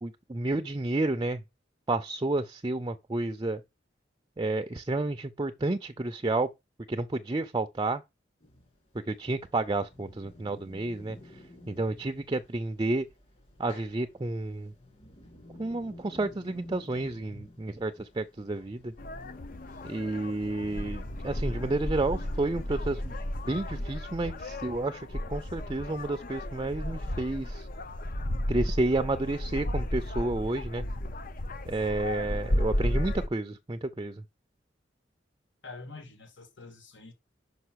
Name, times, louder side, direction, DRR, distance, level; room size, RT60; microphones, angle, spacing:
voice 1, 0.0-1.4 1.9-3.6 4.4-6.5 6.9-8.0 9.1-11.2 11.7-13.1 13.6-14.7 15.6-18.9 19.8-23.1 23.5-27.7 28.5-30.8 31.7-34.2, right 2 dB, 25° right, 0.5 m, -31 dB
sound 1, 8.4-23.8, left 1 dB, 35° left, 2.5 m, -53 dB
sound 2, 19.0-33.3, left 1 dB, 50° left, 0.7 m, -33 dB
voice 2, 35.6-37.1, left 3 dB, 80° left, 2.3 m, -46 dB
5.6 x 5.5 x 6.3 m
head